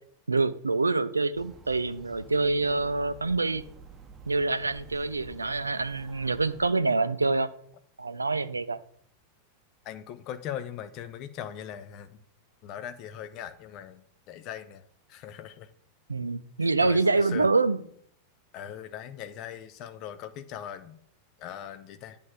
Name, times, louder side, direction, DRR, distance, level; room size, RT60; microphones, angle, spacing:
voice 1, 0.3-3.6 4.3-7.5 8.0-8.8 16.1-17.8, right 3 dB, 80° right, 13 dB, 0.4 m, -26 dB
sound 1, 1.4-6.7, right 4 dB, 20° right, 0.8 m, -50 dB
voice 2, 9.8-12.2 12.6-15.7 16.6-17.5 18.5-21.0 21.4-22.2, left 10 dB, 40° left, 11 dB, 0.6 m, -40 dB
8.5 x 3.5 x 6.4 m, 0.67 s
figure-of-eight pair, 90°, 0 cm